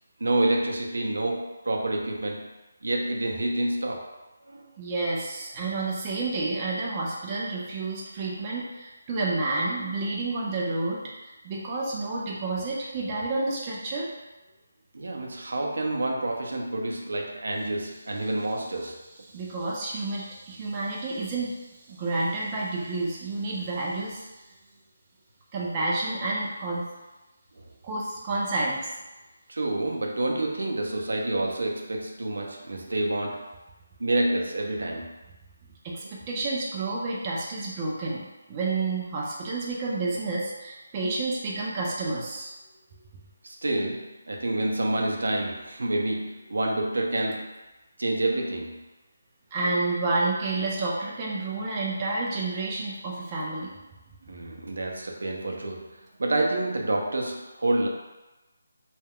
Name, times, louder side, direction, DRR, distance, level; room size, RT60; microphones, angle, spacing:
voice 1, 0.2-2.5 2.8-4.0 4.5-4.7 14.9-19.0 29.5-33.4 34.0-35.1 43.4-47.5 48.0-48.8 54.3-55.9 56.2-57.9, right 2 dB, 80° right, 1 dB, 0.5 m, -28 dB
voice 2, 4.8-11.0 11.4-14.1 19.3-21.6 21.9-24.2 25.5-26.9 27.8-28.9 35.8-42.5 49.5-53.8, right 2 dB, 20° right, -5 dB, 0.4 m, -30 dB
2.2 x 2.1 x 3.5 m, 1.1 s
figure-of-eight pair, 170°, 0 cm